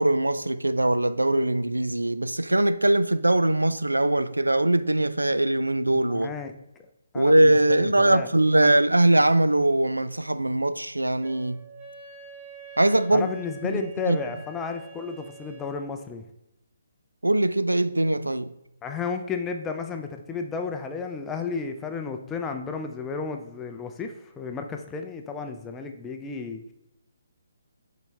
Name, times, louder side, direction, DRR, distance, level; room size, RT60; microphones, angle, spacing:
voice 1, 0.0-6.3 7.1-11.6 12.8-13.3 13.6-14.2 17.2-18.5, right 1 dB, 85° right, 0.3 m, -21 dB
voice 2, 5.9-6.5 7.1-8.3 8.6-8.8 13.1-16.2 18.8-26.6, left 5 dB, 15° left, 0.4 m, -33 dB
Wind instrument woodwind instrument, 11.2-15.9, right 6 dB, 35° right, 1.3 m, -46 dB
7.0 x 4.0 x 3.3 m
figure-of-eight pair, 140°, 0 cm